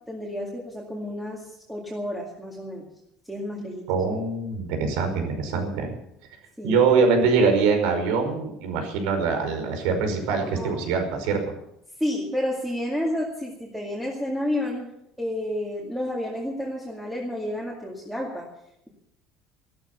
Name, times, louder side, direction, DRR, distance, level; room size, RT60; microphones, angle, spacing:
voice 1, 0.1-2.9 3.3-3.9 5.3-5.4 6.6-6.8 10.4-10.8 12.0-14.9 15.2-18.5, left 1 dB, ahead, -3 dB, 2.3 m, -30 dB
voice 2, 3.9-5.9 6.6-11.4, right 5 dB, 85° right, 5 dB, 5.3 m, -23 dB
15.5 x 13.0 x 6.8 m, 0.79 s
cardioid pair, 170°, 0 cm